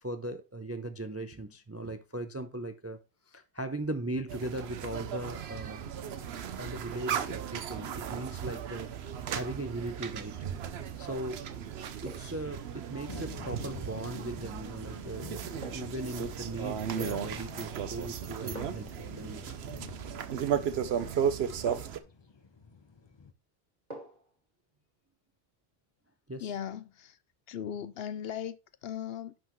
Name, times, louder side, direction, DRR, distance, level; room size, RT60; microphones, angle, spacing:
voice 1, 0.0-3.0 3.3-5.9 6.5-8.9 9.3-10.5 11.0-11.6 12.0-19.5 26.3-26.5, right 1 dB, 25° right, 0.3 m, -38 dB
sound 1, 4.3-22.0, right 8 dB, 70° right, 0.9 m, -36 dB
sound 2, 12.0-12.5 14.6-14.8 15.6-16.1 17.4-17.8 18.5-19.0 20.7-20.8 21.7-22.1 23.9-24.3 24.7-24.8, right 1 dB, 40° right, 2.7 m, -47 dB
sound 3, 13.1-23.3, left 4 dB, 30° left, 0.6 m, -49 dB
voice 2, 26.4-27.2 27.5-28.6 28.8-29.3, left 9 dB, 70° left, 0.8 m, -37 dB
10.0 x 5.8 x 3.1 m
omnidirectional pair, 1.1 m